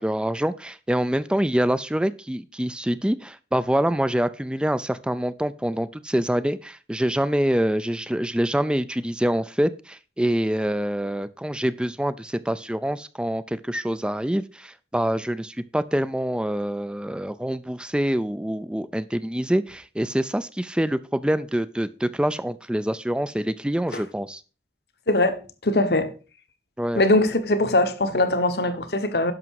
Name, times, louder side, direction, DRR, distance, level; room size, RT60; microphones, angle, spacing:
voice 1, 0.0-24.4 26.8-27.0, right 1 dB, 5° right, 0.4 m, -25 dB
voice 2, 25.1-26.1 27.0-29.3, left 2 dB, 60° left, 1.1 m, -21 dB
11.0 x 6.1 x 4.7 m
head